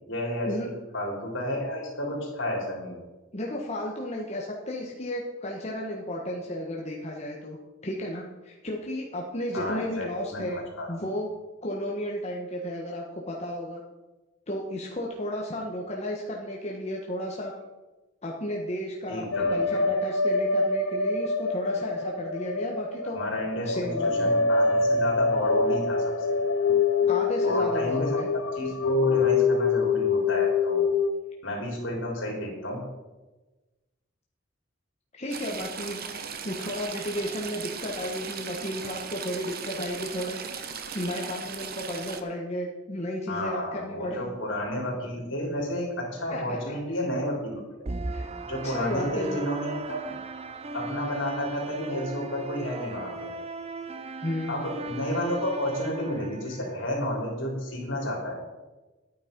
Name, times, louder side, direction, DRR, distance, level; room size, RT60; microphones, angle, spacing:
voice 1, 0.0-3.0 9.5-11.0 19.1-19.9 23.1-26.0 27.4-28.2 28.6-30.9 31.4-32.9 43.3-47.7 48.5-50.1 50.7-53.3 54.5-58.4, equal, 65° left, -1 dB, 3.9 m, -31 dB
voice 2, 3.3-7.6 7.8-10.6 10.9-11.3 11.6-13.8 14.5-17.5 18.2-23.2 23.6-24.3 27.1-28.3 35.1-36.0 36.4-40.4 40.9-44.2 46.3-46.7 48.1-48.3 48.6-49.4 54.2-54.6, left 1 dB, 30° left, -2 dB, 1.4 m, -33 dB
sound 1, 19.3-31.1, left 4 dB, 85° left, 0.7 m, -25 dB
Stream / Trickle dribble, 35.3-42.2, right 6 dB, 50° right, 1.0 m, -37 dB
sound 2, 47.8-56.8, right 2 dB, 30° right, 0.7 m, -38 dB
11.5 x 9.4 x 5.4 m, 1.1 s
head